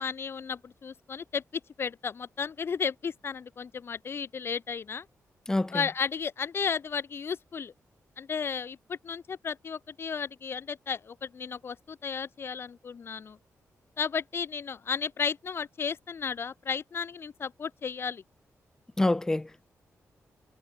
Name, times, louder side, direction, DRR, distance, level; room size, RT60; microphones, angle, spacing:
voice 1, 0.0-5.1 5.7-7.7 8.2-13.4 14.0-18.2, left 6 dB, 45° left, 1.0 m, -34 dB
voice 2, 5.5-5.8 19.0-19.7, left 2 dB, 10° left, 0.4 m, -27 dB
wide cardioid pair, 160°, 6 cm